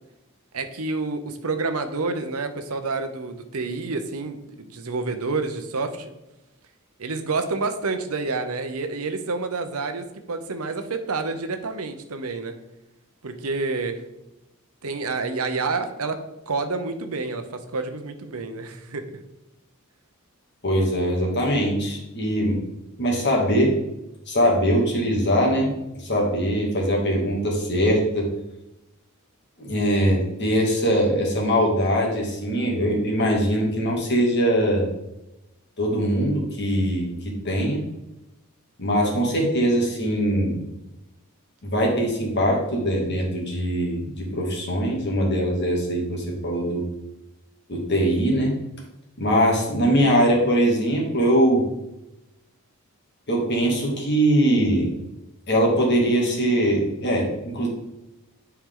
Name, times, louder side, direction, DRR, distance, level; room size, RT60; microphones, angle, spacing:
voice 1, 0.5-6.1 7.0-12.5 13.2-14.0 14.8-17.4 17.7-19.0, right 3 dB, 80° right, 8 dB, 0.9 m, -28 dB
voice 2, 20.6-22.6 23.0-23.7 24.3-28.3 29.6-34.9 35.8-37.8 38.8-40.6 41.6-46.8 47.7-48.5 49.2-51.6 53.3-54.9 55.5-57.7, equal, 50° left, -1 dB, 2.1 m, -22 dB
10.0 x 4.7 x 3.8 m, 0.94 s
head